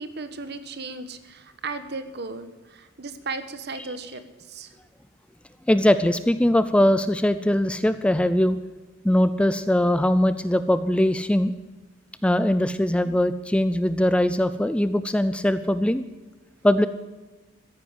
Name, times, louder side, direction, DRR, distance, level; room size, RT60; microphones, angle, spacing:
voice 1, 0.0-4.8, right 3 dB, 55° right, 11 dB, 1.2 m, -36 dB
voice 2, 5.7-8.6 9.0-11.5 12.2-16.0 16.6-16.9, left 1 dB, 5° left, 12 dB, 0.4 m, -21 dB
14.0 x 10.5 x 8.0 m, 1.2 s
head